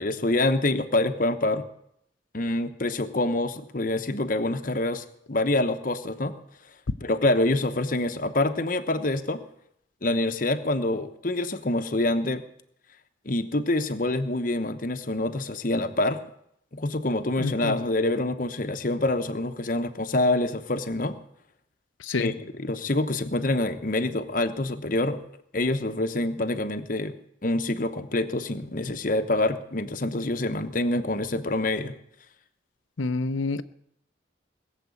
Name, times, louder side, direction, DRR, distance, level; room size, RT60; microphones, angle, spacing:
voice 1, 0.0-1.6 2.3-6.3 7.0-9.4 10.0-12.4 13.2-16.2 16.7-21.2 22.2-22.3 22.6-25.2 25.5-27.1 27.4-32.0, left 2 dB, 45° left, 0.9 m, -26 dB
voice 2, 17.4-17.8 22.0-22.3 33.0-33.6, left 3 dB, 90° left, 0.7 m, -28 dB
20.5 x 7.5 x 8.4 m
head